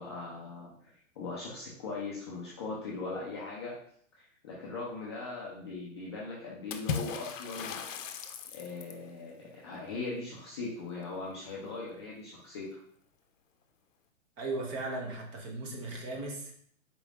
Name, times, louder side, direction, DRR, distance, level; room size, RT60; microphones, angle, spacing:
voice 1, 0.0-3.7 4.1-7.8 8.5-12.8, left 3 dB, 25° left, -5 dB, 0.3 m, -40 dB
Water / Splash splatter, 6.7-9.1, left 6 dB, 70° left, 0.6 m, -37 dB
voice 2, 14.4-16.5, right 2 dB, 30° right, 0 dB, 0.7 m, -37 dB
4.1 x 3.1 x 2.4 m, 0.63 s
hypercardioid pair, 130°, 39 cm